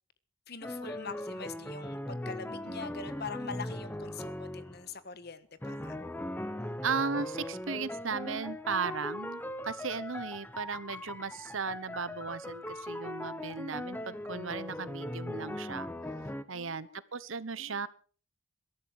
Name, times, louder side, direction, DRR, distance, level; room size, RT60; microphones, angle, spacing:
voice 1, 0.5-5.9 16.5-17.0 17.6-17.9, left 5 dB, 50° left, 1.4 m, -44 dB
sound 1, 0.6-4.9 5.6-16.4, left 1 dB, 10° left, 0.8 m, -39 dB
voice 2, 6.8-15.9 16.5-17.9, right 5 dB, 70° right, 1.1 m, -36 dB
22.0 x 13.0 x 4.8 m
head